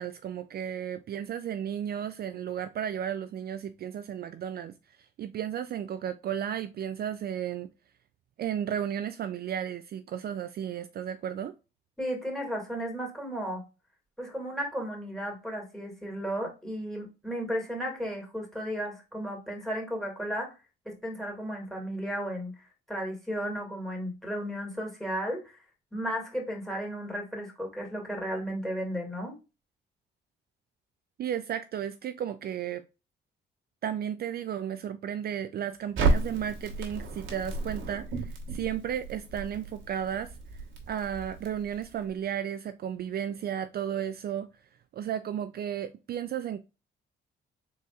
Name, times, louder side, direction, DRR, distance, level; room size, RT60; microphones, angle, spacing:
voice 1, 0.0-7.7 8.4-11.5 31.2-32.8 33.8-44.5 44.9-46.6, right 9 dB, 50° right, 0.4 m, -34 dB
voice 2, 12.0-13.6 14.2-20.5 20.9-22.5 22.9-25.6 25.9-29.3, equal, ahead, 2.2 m, -34 dB
Crackle, 36.0-42.1, right 3 dB, 85° right, 1.3 m, -33 dB
4.1 x 3.9 x 2.4 m
cardioid pair, 90°, 20 cm